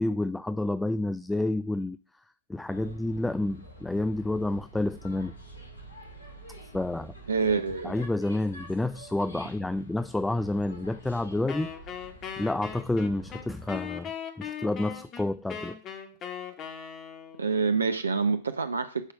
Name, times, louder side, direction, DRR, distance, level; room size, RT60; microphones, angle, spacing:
voice 1, 0.0-2.0 2.5-5.4 6.7-7.1 7.8-11.7 12.4-14.1 14.4-15.8, left 2 dB, 5° left, 0.3 m, -29 dB
sound 1, 2.7-13.8, right 1 dB, 75° left, 2.3 m, -47 dB
voice 2, 7.3-7.9 17.4-19.1, right 5 dB, 80° right, 0.5 m, -26 dB
Wind instrument woodwind instrument, 11.5-17.5, left 8 dB, 30° left, 1.5 m, -39 dB
10.0 x 4.7 x 5.9 m
figure-of-eight pair, 95°, 0 cm